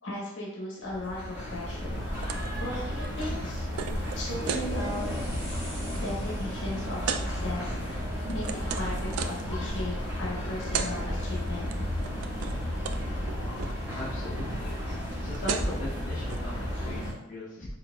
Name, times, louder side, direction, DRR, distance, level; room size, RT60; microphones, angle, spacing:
voice 1, 0.0-2.0 2.5-3.7 4.1-5.2 5.9-11.7, left 1 dB, 60° left, -3 dB, 1.1 m, -37 dB
sound 1, 0.8-17.1, equal, 10° right, 1.5 m, -33 dB
sound 2, 2.2-2.5 2.8-4.7 5.2-5.4 5.7-6.0 7.0-7.3 7.9-9.5 10.4-10.5 10.6-10.9 11.2-11.7 12.0-12.6 12.8-13.0 13.3-13.7 15.0-15.1 15.3-15.8 16.3-16.4, right 7 dB, 90° right, 0.3 m, -35 dB
sound 3, 4.5-12.9, right 1 dB, 35° right, 1.5 m, -43 dB
voice 2, 13.9-17.7, left 1 dB, 40° left, -9 dB, 0.8 m, -39 dB
4.5 x 3.4 x 2.3 m, 0.88 s
head